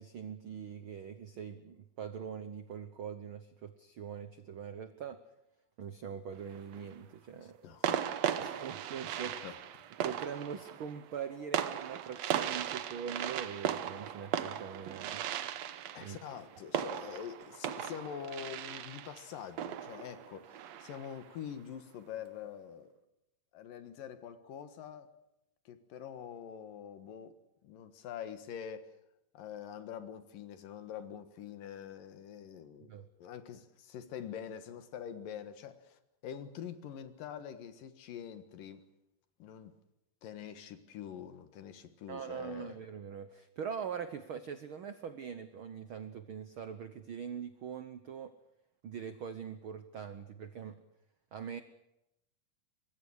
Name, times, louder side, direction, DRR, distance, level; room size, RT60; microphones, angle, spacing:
voice 1, 0.0-5.2 5.8-7.6 8.4-9.4 10.0-15.3 16.0-16.2 32.9-33.1 42.1-48.3 48.8-50.8 51.3-51.6, right 7 dB, 90° right, 10 dB, 1.1 m, -42 dB
sound 1, 6.3-6.9 7.8-21.2, right 10 dB, 65° right, 1.8 m, -37 dB
voice 2, 7.3-8.6 9.4-9.6 15.9-22.9 23.5-25.1 25.7-27.4 27.6-28.9 29.3-32.9 33.2-38.8 39.4-39.8 40.2-42.8, left 8 dB, 80° left, 10 dB, 3.2 m, -45 dB
25.0 x 21.5 x 6.5 m, 0.86 s
omnidirectional pair, 3.9 m